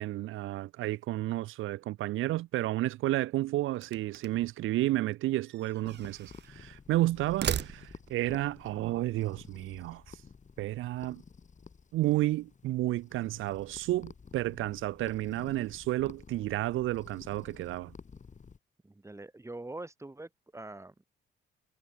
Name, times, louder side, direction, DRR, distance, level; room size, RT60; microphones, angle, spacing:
voice 1, 0.0-10.2 10.6-11.2 11.9-17.9, right 16 dB, 90° right, 1.4 m, -31 dB
sound 1, 3.7-4.6 5.5-6.5 7.2-8.2, right 9 dB, 60° right, 3.2 m, -37 dB
sound 2, 5.8-18.6, left 5 dB, 40° left, 6.9 m, -52 dB
voice 2, 18.8-20.9, right 2 dB, 15° right, 7.2 m, -44 dB
cardioid pair, 90°, 20 cm